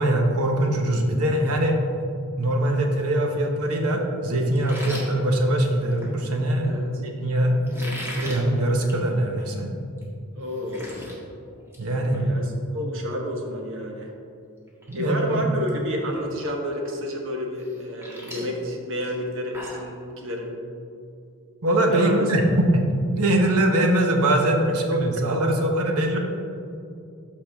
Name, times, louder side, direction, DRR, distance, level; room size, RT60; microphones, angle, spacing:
voice 1, 0.0-1.8 2.4-9.7 11.8-12.3 14.9-15.4 21.6-22.9 23.2-26.2, right 1 dB, 85° right, 3 dB, 1.1 m, -22 dB
sound 1, 4.5-6.1 7.6-8.4 8.8-9.0 9.4-9.5 10.0-10.1 10.3-11.1 11.5-11.8 12.1-12.3 14.1-14.2 14.7-15.0 15.2-15.7 16.1-16.2 17.6-19.9, equal, 10° right, 1.6 m, -38 dB
voice 2, 6.6-7.0 7.8-8.0 10.4-11.1 12.1-14.1 14.9-20.6 21.9-22.3 26.1-26.2, equal, 60° right, 1 dB, 1.3 m, -30 dB
13.0 x 4.8 x 3.6 m, 2.5 s
head